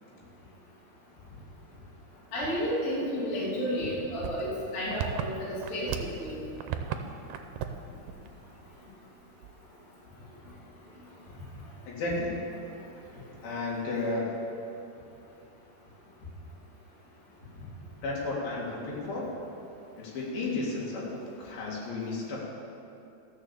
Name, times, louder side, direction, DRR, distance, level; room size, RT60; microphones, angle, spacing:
voice 1, 2.3-6.4, equal, 45° left, -9 dB, 3.9 m, -31 dB
sound 1, 4.2-6.2 6.5-7.0 7.3-7.8 8.1-8.3 8.7-8.8 9.4-9.8, right 9 dB, 80° right, 2.5 m, -35 dB
voice 2, 11.9-12.5 13.4-14.4 18.0-19.2 20.0-22.4, left 2 dB, 65° left, -4 dB, 3.9 m, -33 dB
14.0 x 6.8 x 7.0 m, 2.8 s
omnidirectional pair, 4.6 m